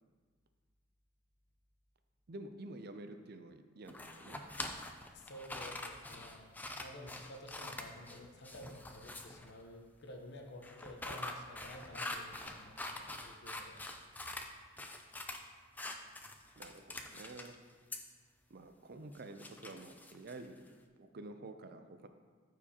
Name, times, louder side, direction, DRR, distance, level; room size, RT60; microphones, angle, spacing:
voice 1, 2.3-4.4 16.6-17.6 18.5-20.7 21.0-22.1, right 2 dB, 50° right, 8 dB, 0.5 m, -49 dB
sound 1, 3.9-9.5 10.6-14.5 14.8-15.4 15.8-17.5 17.9-18.0 19.1-20.7, left 2 dB, 10° left, 0.4 m, -45 dB
voice 2, 5.1-13.8, left 1 dB, 55° left, 3 dB, 0.9 m, -52 dB
13.0 x 4.7 x 2.9 m, 1.5 s
head